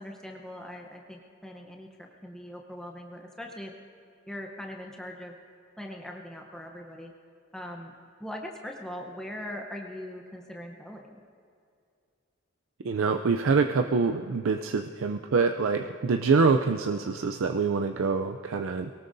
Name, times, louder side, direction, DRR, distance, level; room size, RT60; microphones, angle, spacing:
voice 1, 0.0-3.7 4.3-5.4 5.8-7.1 7.5-7.9 8.2-11.2, left 1 dB, 5° left, 0 dB, 0.8 m, -41 dB
voice 2, 12.8-18.9, right 4 dB, 75° right, 5 dB, 0.5 m, -25 dB
22.5 x 18.0 x 2.7 m, 2.4 s
head